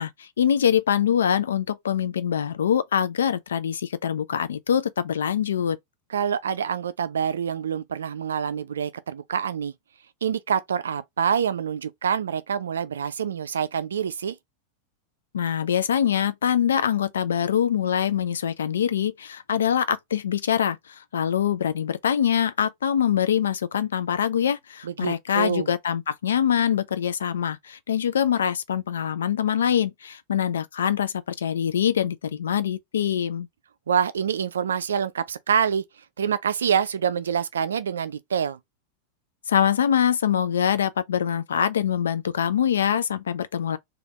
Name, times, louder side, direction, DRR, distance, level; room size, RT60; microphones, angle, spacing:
voice 1, 0.0-5.8 15.3-33.5 39.5-43.8, left 9 dB, 65° left, 0.4 m, -24 dB
voice 2, 6.1-9.7 10.2-14.4 24.8-25.7 33.9-35.8 36.2-38.6, right 7 dB, 65° right, 0.4 m, -26 dB
3.3 x 2.4 x 3.3 m
figure-of-eight pair, 90°, 0 cm